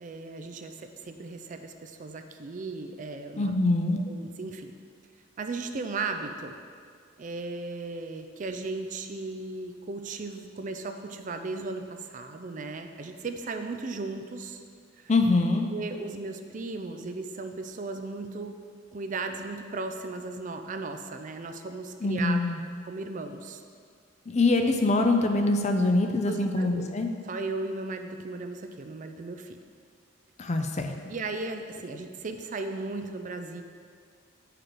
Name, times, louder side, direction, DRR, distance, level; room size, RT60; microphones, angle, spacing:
voice 1, 0.0-3.5 4.1-4.7 5.4-6.6 7.2-14.6 15.0-15.1 15.7-18.6 18.9-22.4 22.8-23.6 26.2-26.9 27.2-29.6 31.1-33.6, right 3 dB, 40° right, 6 dB, 0.4 m, -36 dB
voice 2, 3.4-4.0 15.1-15.7 22.0-22.6 24.3-27.1 30.4-30.9, left 2 dB, 35° left, 5 dB, 0.5 m, -24 dB
8.7 x 5.0 x 4.6 m, 2.1 s
head